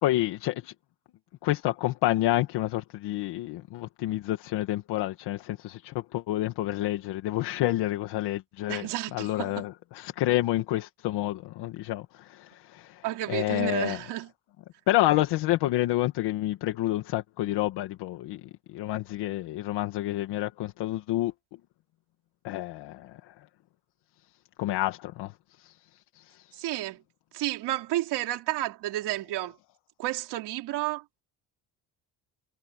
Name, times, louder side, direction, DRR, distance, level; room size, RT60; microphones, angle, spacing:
voice 1, 0.0-0.7 1.4-14.0 14.9-21.3 22.4-23.3 24.6-25.7 26.2-26.6, left 15 dB, 80° left, 2.0 m, -29 dB
voice 2, 8.7-9.7 13.0-14.3 26.6-27.0 27.3-29.6 30.0-31.2, right 16 dB, 80° right, 3.7 m, -31 dB
cardioid pair, 150°, 40 cm